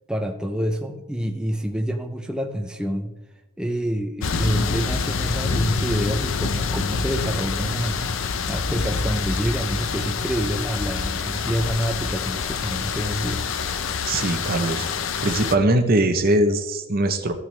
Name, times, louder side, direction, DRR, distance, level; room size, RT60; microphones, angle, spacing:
voice 1, 0.1-3.1 3.6-8.0 8.5-13.5, equal, 5° right, 4 dB, 0.5 m, -27 dB
sound 1, 4.2-15.5, left 5 dB, 65° left, 0.6 m, -26 dB
voice 2, 14.0-14.9 15.2-17.3, right 1 dB, 45° right, 7 dB, 0.7 m, -21 dB
14.0 x 6.0 x 3.3 m, 1.0 s
head